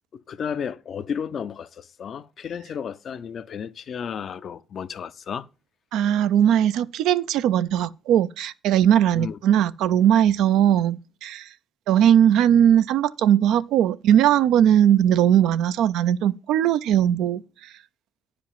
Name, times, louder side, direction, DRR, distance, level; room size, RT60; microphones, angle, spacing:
voice 1, 0.1-5.5 9.1-9.4, left 7 dB, 60° left, 0.7 m, -33 dB
voice 2, 5.9-11.5 11.9-17.7, right 10 dB, 80° right, 0.5 m, -19 dB
10.0 x 5.1 x 7.4 m
supercardioid pair, 50°, 0 cm